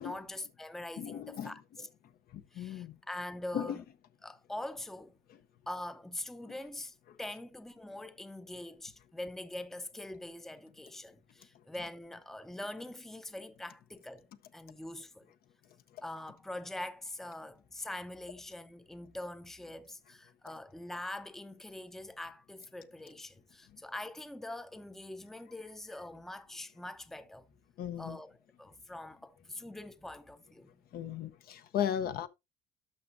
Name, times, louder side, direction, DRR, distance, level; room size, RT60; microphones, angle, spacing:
voice 1, 0.0-1.9 2.5-3.8 4.2-5.2 5.7-14.3 14.5-15.3 16.0-27.5 28.0-30.7, left 1 dB, ahead, 0.6 m, -43 dB
voice 2, 1.0-1.5 2.3-3.0 3.5-3.8 6.5-6.6 15.9-16.0 27.8-28.2 30.9-32.3, left 9 dB, 60° left, 0.8 m, -36 dB
11.5 x 6.0 x 2.6 m
cardioid pair, 110°, 17 cm